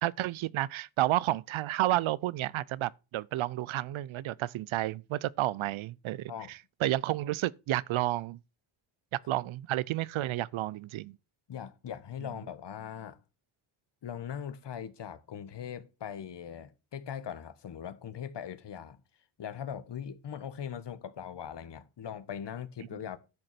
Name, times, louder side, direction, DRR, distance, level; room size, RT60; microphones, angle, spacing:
voice 1, 0.0-8.4 9.1-11.2, right 15 dB, 70° right, 0.6 m, -31 dB
voice 2, 11.5-13.2 14.0-19.0 19.4-23.2, left 8 dB, 55° left, 1.4 m, -40 dB
10.5 x 6.4 x 5.9 m
cardioid pair, 70°, 49 cm